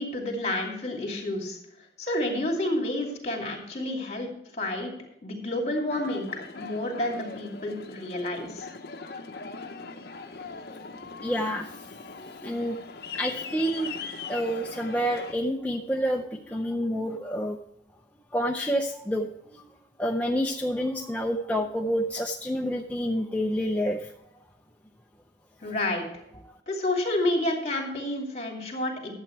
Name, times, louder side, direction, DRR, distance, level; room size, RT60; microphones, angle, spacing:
voice 1, 0.0-1.6 2.0-4.9 5.2-6.3 6.5-8.7 25.6-26.1 26.7-29.1, left 1 dB, 35° left, 1 dB, 2.6 m, -29 dB
Aircraft, 5.9-15.3, left 5 dB, 55° left, 0.8 m, -40 dB
voice 2, 11.2-11.8 12.2-12.8 13.1-17.6 18.3-19.7 20.0-24.1, equal, 10° left, 1 dB, 0.5 m, -28 dB
12.0 x 8.0 x 4.6 m, 0.82 s
head